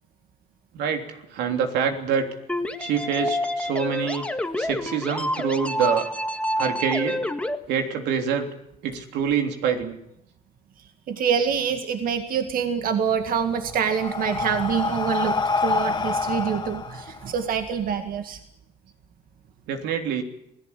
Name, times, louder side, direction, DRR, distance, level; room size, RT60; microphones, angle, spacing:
voice 1, 1.3-2.3 2.8-4.3 4.6-6.1 6.6-7.2 7.7-8.5 8.8-10.0 19.7-20.2, right 7 dB, 85° right, 4 dB, 3.3 m, -25 dB
sound 1, 2.5-7.6, left 1 dB, 5° left, 1.8 m, -28 dB
voice 2, 11.1-18.4, right 7 dB, 55° right, 6 dB, 2.1 m, -26 dB
Breathing, 13.2-17.9, left 4 dB, 25° left, 2.0 m, -27 dB
27.0 x 17.5 x 8.5 m, 0.80 s
cardioid pair, 110°, 17 cm